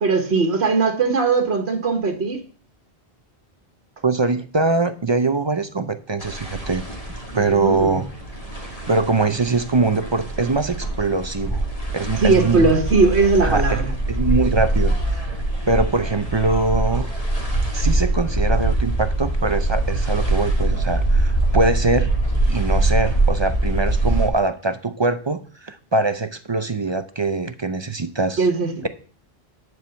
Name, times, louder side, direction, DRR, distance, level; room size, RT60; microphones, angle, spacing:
voice 1, 0.0-2.4 7.3-8.0 12.2-13.9 28.4-28.7, right 4 dB, 80° right, 3 dB, 1.6 m, -19 dB
voice 2, 4.0-6.8 7.3-8.1 8.9-11.7 11.9-12.7 13.4-13.8 14.1-15.3 15.7-17.1 17.7-22.1 22.5-28.5 28.8-28.9, right 3 dB, 35° right, 10 dB, 0.5 m, -22 dB
sound 1, 6.2-24.3, right 2 dB, 35° left, 1.9 m, -23 dB
10.5 x 4.8 x 7.0 m, 0.42 s
omnidirectional pair, 1.1 m